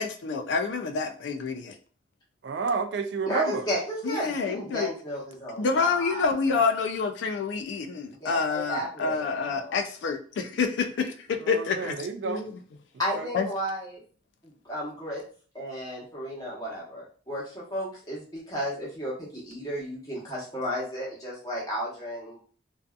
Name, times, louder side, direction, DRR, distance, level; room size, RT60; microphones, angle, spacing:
voice 1, 0.0-1.8 4.0-4.9 5.6-11.9 12.2-12.5 13.3-13.5, left 5 dB, 75° left, 6 dB, 0.3 m, -28 dB
voice 2, 2.4-3.7 11.4-12.5 13.1-13.3, right 4 dB, 65° right, 7 dB, 0.3 m, -30 dB
voice 3, 3.3-6.7 8.2-9.8 13.0-14.0 14.4-15.2 15.5-22.4, equal, 20° left, -6 dB, 1.0 m, -33 dB
2.6 x 2.3 x 2.3 m, 0.42 s
head